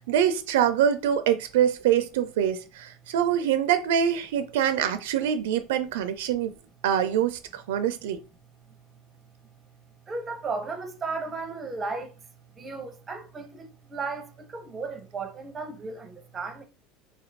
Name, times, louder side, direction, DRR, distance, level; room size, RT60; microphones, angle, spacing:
voice 1, 0.0-6.5 6.8-8.2, right 9 dB, 85° right, 0.4 m, -24 dB
voice 2, 10.1-12.1 12.6-16.6, right 4 dB, 20° right, 0.6 m, -35 dB
2.7 x 2.5 x 3.2 m
supercardioid pair, 135°, 0 cm